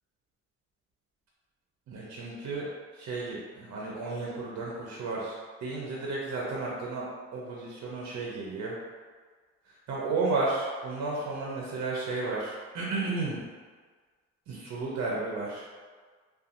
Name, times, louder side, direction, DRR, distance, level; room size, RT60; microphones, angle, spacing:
voice 1, 1.9-2.7 2.9-7.1 7.3-8.7 9.7-13.4 14.5-15.6, right 3 dB, 60° right, -5 dB, 0.7 m, -33 dB
2.6 x 2.4 x 2.5 m, 1.5 s
cardioid pair, 90°, 30 cm